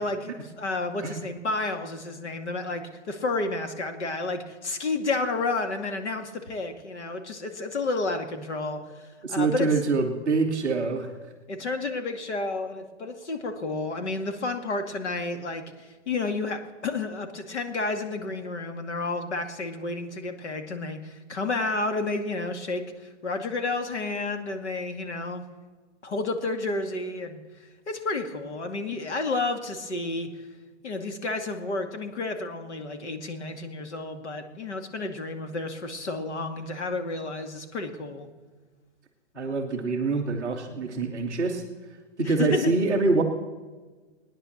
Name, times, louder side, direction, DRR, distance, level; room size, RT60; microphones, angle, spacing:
voice 1, 0.0-9.7 11.5-25.4 26.0-27.4 27.9-30.3 30.8-38.3 42.2-42.7, left 3 dB, 70° left, 5 dB, 2.4 m, -31 dB
voice 2, 9.2-11.1 39.3-41.6 42.2-43.2, right 3 dB, ahead, -10 dB, 0.6 m, -25 dB
19.5 x 10.0 x 7.3 m, 1.3 s
hypercardioid pair, 165°, 35 cm